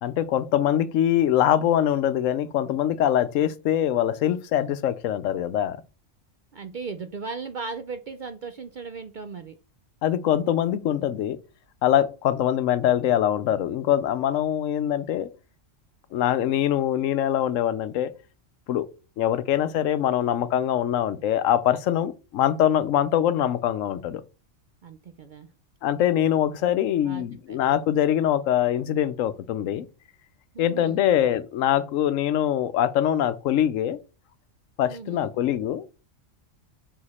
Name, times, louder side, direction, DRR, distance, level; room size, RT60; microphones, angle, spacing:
voice 1, 0.0-5.8 10.0-11.4 11.8-15.3 16.1-18.1 18.7-18.9 19.2-24.2 25.8-29.9 30.6-34.0 34.8-35.8, left 11 dB, 85° left, 1.0 m, -23 dB
voice 2, 6.5-9.6 24.8-25.5 27.0-27.6 30.5-31.0 34.9-35.3, right 4 dB, 60° right, 0.5 m, -37 dB
5.9 x 4.8 x 4.1 m
omnidirectional pair, 1.3 m